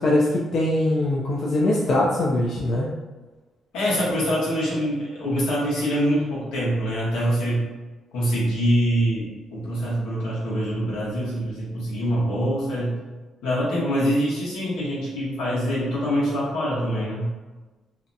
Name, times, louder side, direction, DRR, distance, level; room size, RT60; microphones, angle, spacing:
voice 1, 0.0-2.9, left 1 dB, 60° left, -5 dB, 0.4 m, -22 dB
voice 2, 3.7-7.7 8.1-13.0 13.4-17.3, equal, 90° left, -7 dB, 1.0 m, -24 dB
2.7 x 2.2 x 2.6 m, 1.2 s
supercardioid pair, 70°, 0 cm